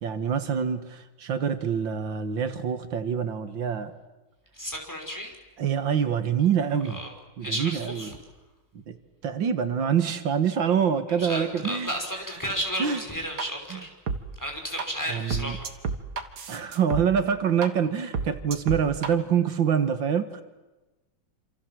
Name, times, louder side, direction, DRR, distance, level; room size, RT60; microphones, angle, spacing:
voice 1, 0.0-3.9 5.6-7.0 7.4-8.1 8.9-9.0 9.2-11.9 12.8-13.0 13.7-13.8 15.1-15.6 16.5-20.4, right 7 dB, 90° right, 10 dB, 2.4 m, -26 dB
voice 2, 4.5-5.4 6.8-7.1 7.4-8.2 11.2-13.9 14.3-15.7, equal, 10° left, 2 dB, 5.8 m, -33 dB
sound 1, 13.4-13.5 14.1-14.2 14.8-14.9 15.3-17.0 17.6-17.7 18.1-19.1, right 5 dB, 60° right, 2.3 m, -29 dB
27.5 x 27.5 x 7.6 m, 1.1 s
omnidirectional pair, 2.0 m